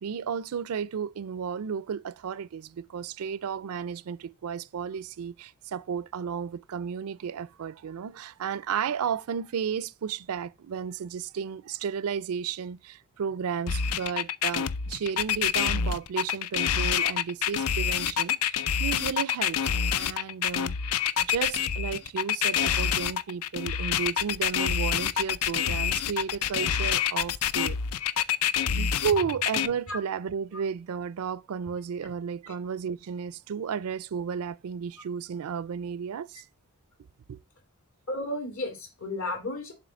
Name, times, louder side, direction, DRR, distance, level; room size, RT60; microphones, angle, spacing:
voice 1, 0.0-20.7 21.2-27.8 28.7-36.4 37.3-37.4, right 7 dB, 70° right, 0.4 m, -33 dB
sound 1, 13.7-29.7, left 8 dB, 85° left, 0.5 m, -27 dB
voice 2, 38.1-39.7, left 2 dB, 65° left, 2.4 m, -33 dB
7.4 x 3.1 x 6.2 m
head